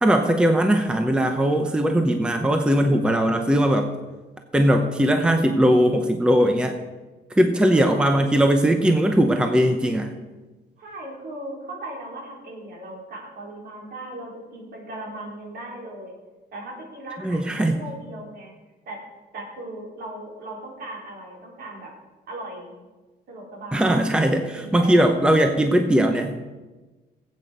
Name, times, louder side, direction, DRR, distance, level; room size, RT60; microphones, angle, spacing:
voice 1, 0.0-3.9 4.5-6.8 7.3-10.1 17.2-17.8 23.7-26.4, right 1 dB, 5° right, 5 dB, 0.7 m, -19 dB
voice 2, 7.7-8.2 10.8-16.1 16.5-18.5 18.9-19.0 19.3-21.9 22.3-22.7 23.3-24.0 24.5-25.2, right 1 dB, 60° right, -1 dB, 3.9 m, -38 dB
18.5 x 8.5 x 5.0 m, 1.2 s
cardioid pair, 175°, 18 cm